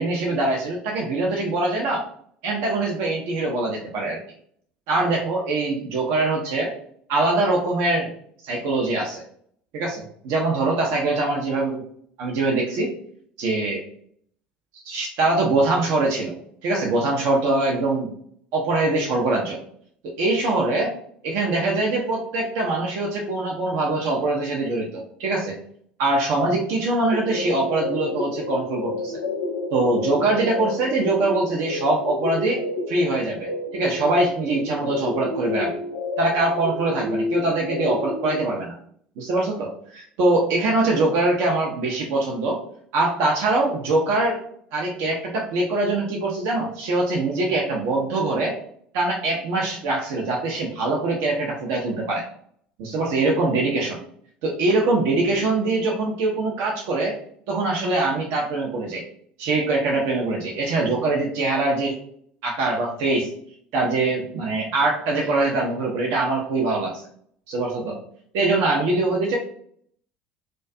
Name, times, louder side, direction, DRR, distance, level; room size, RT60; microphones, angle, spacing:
voice 1, 0.0-2.0 2.4-4.2 4.9-6.7 7.1-8.1 8.4-9.2 9.7-11.8 12.2-12.9 13.4-13.8 14.8-16.4 16.6-18.1 18.5-19.6 20.0-20.9 21.2-25.6 26.0-29.2 29.7-35.8 36.2-38.8 39.2-42.6 42.9-44.4 44.7-48.5 48.9-52.2 52.8-54.0 54.4-57.1 57.5-59.0 59.4-62.0 62.4-63.3 63.7-67.1 67.5-68.0 68.3-69.4, right 2 dB, 60° right, -1 dB, 0.5 m, -23 dB
sound 1, 27.1-38.4, left 2 dB, 80° left, 0.5 m, -30 dB
2.3 x 2.2 x 2.5 m, 0.62 s
figure-of-eight pair, 65°, 5 cm